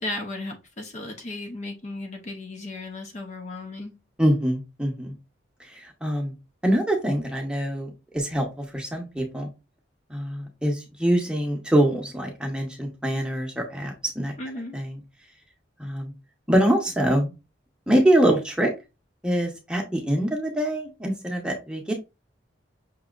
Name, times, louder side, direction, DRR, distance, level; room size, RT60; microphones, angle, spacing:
voice 1, 0.0-3.9 14.4-14.8, left 2 dB, 35° left, 3 dB, 0.6 m, -35 dB
voice 2, 4.2-5.1 5.6-6.3 6.6-9.5 10.1-14.3 14.7-15.0 15.8-16.1 16.5-17.3 17.9-18.7 19.2-21.9, right 1 dB, 5° right, 1 dB, 0.8 m, -24 dB
5.9 x 2.7 x 2.4 m, 0.27 s
head